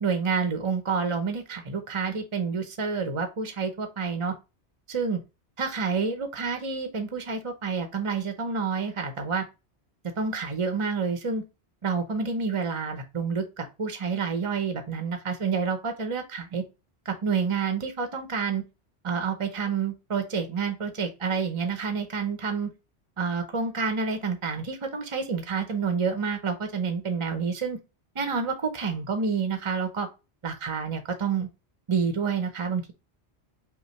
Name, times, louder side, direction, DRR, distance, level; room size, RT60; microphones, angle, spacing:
voice 1, 0.0-4.3 4.9-5.2 5.6-9.4 10.2-11.4 11.8-16.6 17.1-18.6 19.0-22.7 23.2-27.8 28.1-30.1 30.4-31.5 31.9-32.9, right 5 dB, 35° right, 7 dB, 0.6 m, -28 dB
5.4 x 2.6 x 3.0 m, 0.27 s
omnidirectional pair, 1.1 m